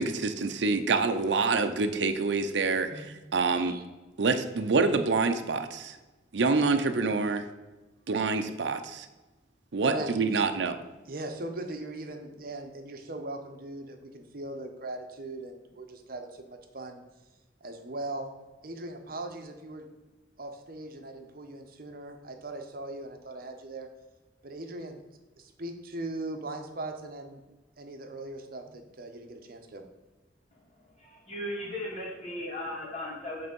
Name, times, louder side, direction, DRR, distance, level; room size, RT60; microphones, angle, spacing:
voice 1, 0.0-3.7 4.2-6.0 6.3-7.5 8.1-9.1 9.7-10.8, right 4 dB, 80° right, 7 dB, 0.6 m, -26 dB
voice 2, 9.8-10.4 11.1-17.0 17.6-18.3 18.6-19.9 20.4-23.9 24.4-25.0 25.4-27.4 27.8-29.8, right 2 dB, 55° right, 5 dB, 0.9 m, -39 dB
voice 3, 31.0-33.5, left 1 dB, 35° left, -6 dB, 2.2 m, -37 dB
7.9 x 3.5 x 5.3 m, 1.1 s
head